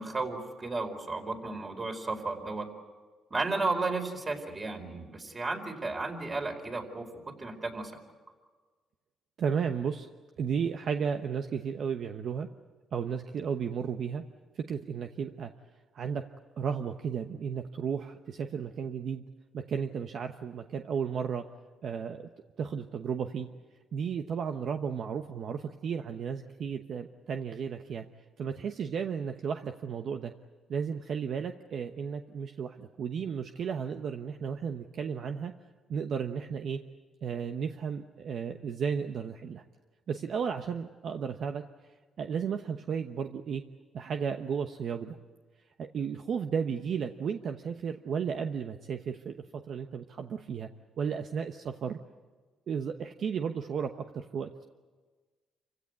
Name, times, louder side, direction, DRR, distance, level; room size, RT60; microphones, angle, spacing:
voice 1, 0.0-2.7 3.3-7.1 7.4-7.9, right 3 dB, 30° right, 3 dB, 4.6 m, -33 dB
voice 2, 9.4-10.1 10.4-12.5 12.9-14.2 14.5-15.5 15.9-16.2 16.6-19.2 19.5-21.4 21.8-22.3 22.6-23.5 23.9-28.1 28.4-30.3 30.7-35.5 35.9-36.8 37.2-39.6 40.1-41.6 42.2-43.6 43.9-45.2 45.8-50.7 51.0-52.0 52.7-54.6, right 7 dB, 60° right, 6 dB, 1.0 m, -34 dB
28.0 x 16.5 x 9.5 m, 1.4 s
cardioid pair, 90°, 0 cm